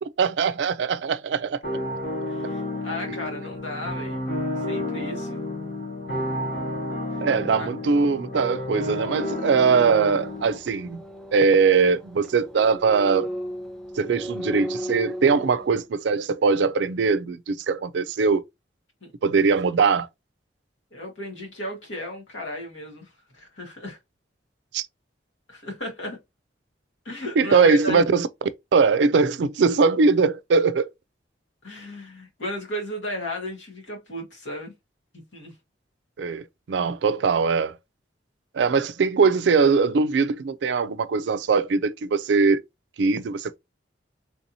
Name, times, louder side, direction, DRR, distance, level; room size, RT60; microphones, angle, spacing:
voice 1, 0.0-1.6 7.2-11.0 11.3-13.3 14.0-18.4 19.2-20.1 24.7-24.9 27.4-28.3 28.7-30.9 36.2-37.8 38.5-42.6 43.0-43.6, right 5 dB, 70° right, 0.4 m, -21 dB
sound 1, 1.6-10.6, left 1 dB, 55° left, 1.7 m, -31 dB
voice 2, 2.3-4.2 4.7-5.4 7.6-7.7 19.0-19.1 20.9-24.0 25.5-26.2 27.0-28.1 31.6-34.7 35.3-35.5, left 1 dB, 90° left, 1.5 m, -34 dB
sound 2, 8.9-15.8, equal, 5° left, 0.4 m, -36 dB
3.3 x 2.7 x 2.7 m
head